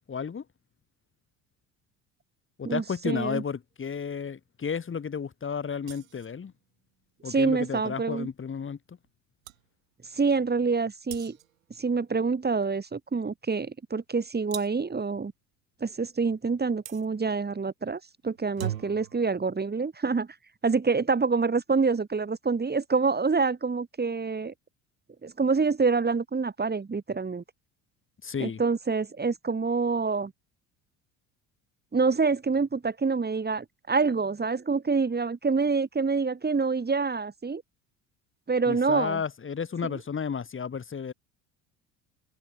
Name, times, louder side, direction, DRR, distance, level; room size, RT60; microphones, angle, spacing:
voice 1, 0.1-0.4 2.6-6.5 7.2-9.0 28.2-28.6 38.7-41.1, left 6 dB, 30° left, 3.6 m, -32 dB
voice 2, 2.6-3.4 7.3-8.3 10.1-11.4 11.8-15.3 15.8-20.3 20.6-24.5 25.2-27.4 28.4-30.3 31.9-37.6 38.5-39.2 39.8-39.9, right 4 dB, 25° right, 6.4 m, -26 dB
sound 1, 5.8-6.4 9.1-9.2 9.4-9.6 11.1-11.6 14.5-14.9 16.9-17.1 18.4-19.2, right 11 dB, 90° right, 5.7 m, -38 dB
open air
hypercardioid pair, 65°, 39 cm